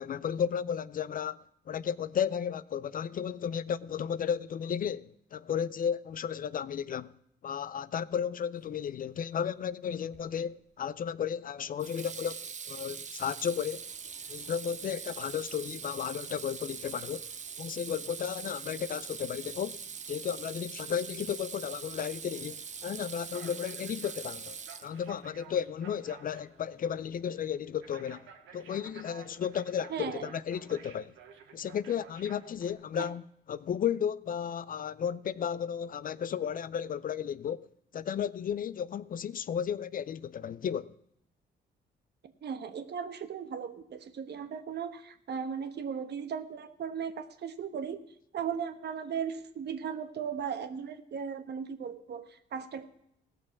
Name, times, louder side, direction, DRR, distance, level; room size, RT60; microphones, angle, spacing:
voice 1, 0.0-1.4 1.7-7.1 7.4-13.9 14.3-17.3 17.6-19.8 20.1-28.3 28.5-31.1 31.5-37.7 37.9-40.9, left 8 dB, 45° left, 0.4 m, -34 dB
Water tap faucet / Sink (filling or washing), 10.1-10.5 11.8-25.2, right 6 dB, 35° right, 0.7 m, -42 dB
sound 1, 13.7-32.7, right 6 dB, 90° right, 1.6 m, -56 dB
voice 2, 29.9-30.3 33.0-33.1 42.4-48.0 48.3-52.8, right 7 dB, 55° right, 1.1 m, -37 dB
16.5 x 6.4 x 6.1 m
cardioid pair, 90°, 20 cm